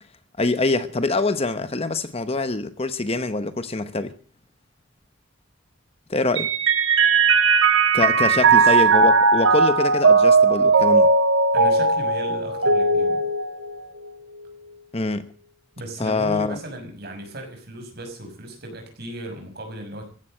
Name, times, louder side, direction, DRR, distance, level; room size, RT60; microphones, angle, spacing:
voice 1, 0.4-4.1 6.1-6.5 7.9-11.1 14.9-15.3 16.0-16.6, left 3 dB, 30° left, 0.9 m, -24 dB
Mallet percussion, 6.4-14.1, right 4 dB, 75° right, 1.6 m, -18 dB
voice 2, 8.4-8.7 11.5-13.3 15.8-20.0, right 1 dB, 55° right, 6.0 m, -36 dB
15.5 x 10.5 x 7.7 m
head